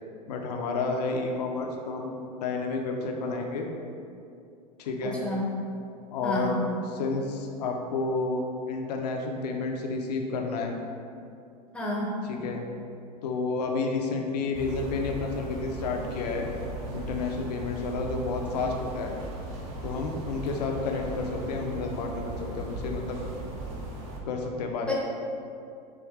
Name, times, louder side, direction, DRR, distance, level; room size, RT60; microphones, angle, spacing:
voice 1, 0.3-3.7 4.8-5.2 6.1-6.6 6.9-10.7 12.2-12.6 13.2-16.5 16.9-19.1 19.8-23.2 24.3-25.0, left 3 dB, 75° left, 2 dB, 0.6 m, -30 dB
voice 2, 5.0-5.5 6.2-6.6 11.7-12.1, equal, 5° left, -4 dB, 0.8 m, -30 dB
sound 1, 14.5-24.2, right 1 dB, 55° right, 0.8 m, -37 dB
4.7 x 2.5 x 3.5 m, 2.5 s
hypercardioid pair, 100°, 21 cm